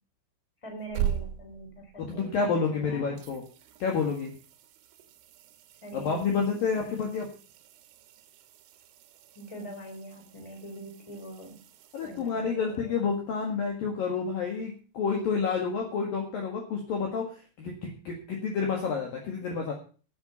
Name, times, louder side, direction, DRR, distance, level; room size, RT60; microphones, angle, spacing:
voice 1, 0.6-3.2 5.8-7.0 9.3-11.6 12.0-12.9, right 1 dB, 5° left, 2 dB, 2.9 m, -43 dB
sound 1, 0.6-2.8 3.2-12.8 15.5-15.6, right 10 dB, 75° right, 3.5 m, -41 dB
voice 2, 2.1-3.4 3.8-4.3 5.9-7.3 11.9-19.7, left 5 dB, 55° left, 1 dB, 2.8 m, -29 dB
10.5 x 8.2 x 6.9 m, 0.37 s
omnidirectional pair, 5.8 m